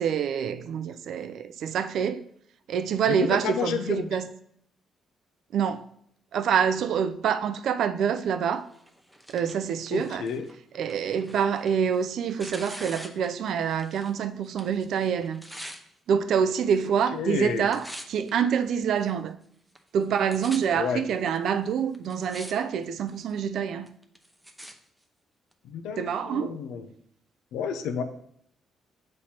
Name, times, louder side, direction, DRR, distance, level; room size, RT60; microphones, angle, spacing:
voice 1, 0.0-2.3 2.7-4.3 5.5-5.8 6.3-8.7 9.3-10.3 10.7-15.4 16.1-19.4 19.9-23.9 26.0-26.6, right 7 dB, 70° right, 0.4 m, -26 dB
voice 2, 3.1-4.1 9.9-10.5 17.1-17.7 20.8-21.0 25.6-26.9 27.5-28.0, left 7 dB, 90° left, 0.6 m, -30 dB
Tearing, 8.7-14.2 14.4-15.8 16.5-17.1 17.3-18.3 18.9-19.0 19.8-19.9 20.0-20.6 21.4-21.5 21.9-22.5 22.8-23.3 23.9-24.7 25.5-25.6, equal, 5° right, 0.7 m, -44 dB
7.2 x 3.2 x 4.3 m
cardioid pair, 90°, 0 cm